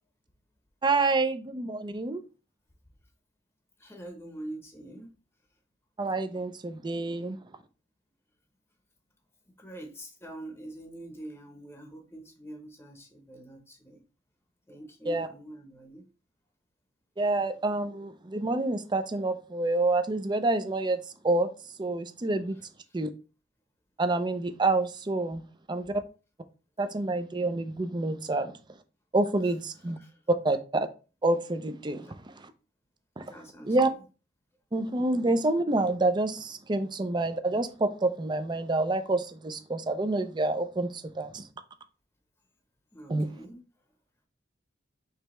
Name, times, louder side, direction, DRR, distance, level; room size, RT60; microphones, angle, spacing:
voice 1, 0.8-2.2 6.0-7.4 15.1-15.3 17.2-21.0 21.2-21.5 21.8-22.6 22.9-23.1 24.0-25.4 25.7-26.0 26.8-28.5 29.1-30.0 30.3-30.9 31.2-32.0 32.4-32.5 33.2-33.3 33.7-33.9 34.7-41.4 43.1-43.3, right 2 dB, 25° right, 0.5 m, -27 dB
voice 2, 3.8-5.1 9.6-14.0 14.7-16.1 30.0-30.2 32.0-32.1 33.3-33.8 42.9-43.6, right 1 dB, 15° left, 0.9 m, -44 dB
4.9 x 3.3 x 3.1 m
head